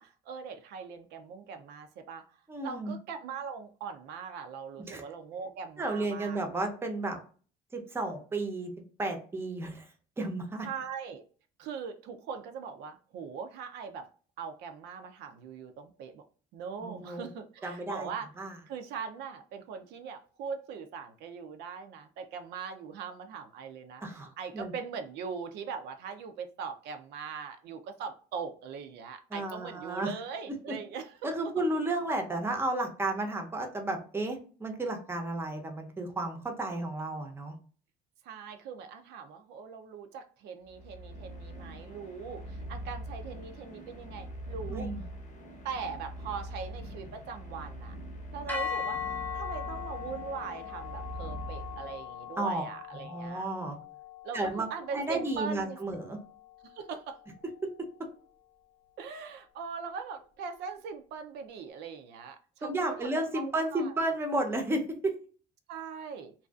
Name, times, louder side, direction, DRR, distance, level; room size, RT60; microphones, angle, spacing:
voice 1, 0.0-6.4 10.6-11.2 11.6-14.1 14.4-16.2 16.5-18.3 18.7-31.5 38.2-44.9 45.6-47.9 48.3-53.5 54.2-55.8 56.6-57.2 59.0-64.0 65.7-66.3, right 6 dB, 80° right, 7 dB, 0.4 m, -41 dB
voice 2, 2.5-2.9 4.9-5.0 5.8-7.2 7.7-8.7 9.0-9.9 10.2-10.7 16.8-17.3 17.6-18.1 18.4-18.5 24.0-24.7 29.3-30.1 31.2-37.5 44.7-45.0 52.4-52.6 53.0-53.8 54.3-54.7 54.9-56.2 62.6-65.1, right 2 dB, 15° right, 4 dB, 0.6 m, -32 dB
sound 1, 40.6-52.3, right 1 dB, 45° left, 0.7 m, -43 dB
sound 2, 48.5-56.7, left 7 dB, 10° left, 0.9 m, -40 dB
2.5 x 2.3 x 2.3 m, 0.40 s
cardioid pair, 110°, 17 cm